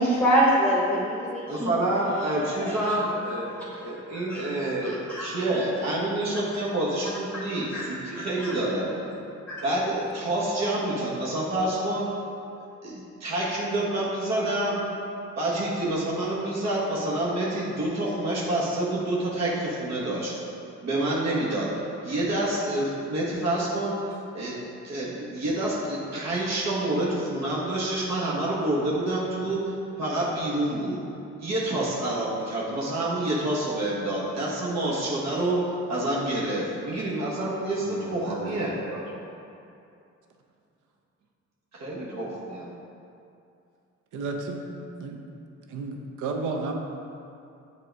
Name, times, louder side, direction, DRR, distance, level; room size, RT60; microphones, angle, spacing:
voice 1, 0.0-1.8 4.1-4.5 5.1-5.3 7.7-7.8 8.4-8.5 9.5-9.6, right 1 dB, 5° left, -8 dB, 1.3 m, -24 dB
voice 2, 1.5-8.9 9.6-12.1 12.8-14.8 15.4-20.3 20.8-21.7 22.0-24.0 24.3-24.5 24.8-31.0 31.4-35.6 35.9-39.2 41.7-42.7, right 1 dB, 60° right, -6 dB, 1.4 m, -28 dB
voice 3, 37.8-38.6 44.1-44.6 45.0-45.2 45.7-46.7, right 4 dB, 80° right, 3 dB, 0.7 m, -33 dB
7.6 x 2.9 x 4.6 m, 2.6 s
cardioid pair, 90°, 30 cm